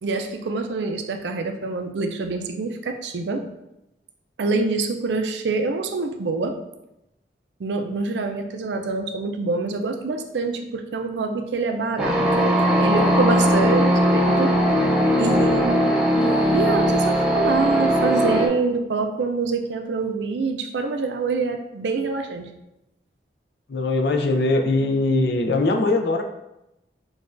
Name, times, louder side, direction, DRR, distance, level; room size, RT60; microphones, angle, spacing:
voice 1, 0.0-3.5 4.4-6.6 7.6-14.6 15.2-22.5, right 3 dB, 85° right, 6 dB, 0.4 m, -26 dB
sound 1, 12.0-18.5, equal, 5° right, 0.5 m, -19 dB
voice 2, 23.7-26.2, left 2 dB, 75° left, 4 dB, 0.5 m, -21 dB
6.2 x 2.3 x 2.5 m, 0.89 s
head